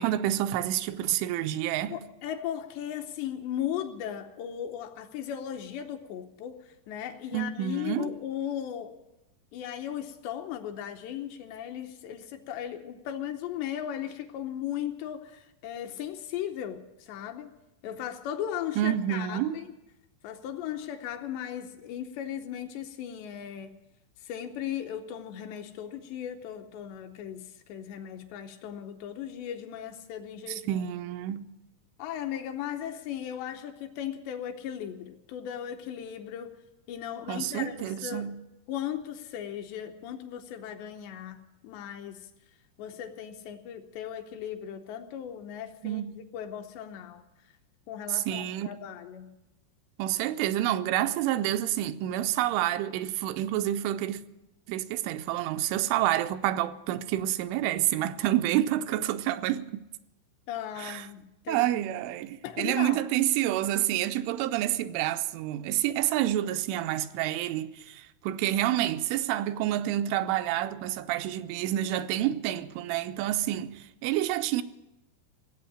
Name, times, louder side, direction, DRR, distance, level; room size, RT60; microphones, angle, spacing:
voice 1, 0.0-2.0 7.3-8.1 18.8-19.6 30.5-31.5 37.3-38.4 45.8-46.2 48.1-48.7 50.0-54.2 54.7-59.9 60.8-61.1 61.5-74.6, right 13 dB, 85° right, 3.1 m, -28 dB
voice 2, 1.9-9.0 9.5-17.5 17.8-19.7 20.2-23.7 24.2-30.8 32.0-36.5 36.9-38.3 38.7-42.3 42.8-47.2 47.9-49.4 60.5-61.9 62.4-63.0, left 10 dB, 75° left, 2.8 m, -37 dB
17.0 x 8.2 x 9.8 m
omnidirectional pair, 5.4 m